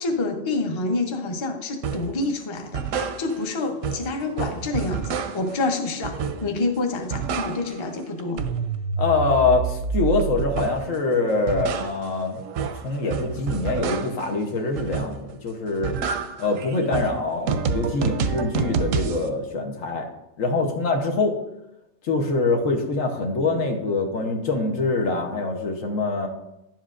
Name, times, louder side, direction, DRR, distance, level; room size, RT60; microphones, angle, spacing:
voice 1, 0.0-8.4, left 3 dB, 30° left, 4 dB, 0.6 m, -27 dB
sound 1, 1.8-2.1 2.6-3.6 3.8-5.6 6.0-6.7 6.9-7.9 8.2-10.9 11.3-14.3 14.8-15.4 15.7-19.3, right 6 dB, 90° right, 1.0 m, -28 dB
voice 2, 9.0-12.4 12.8-16.0 16.4-20.1 20.4-21.3 22.0-26.3, left 3 dB, 80° left, 3 dB, 1.4 m, -24 dB
10.5 x 7.4 x 2.5 m, 0.90 s
omnidirectional pair, 1.3 m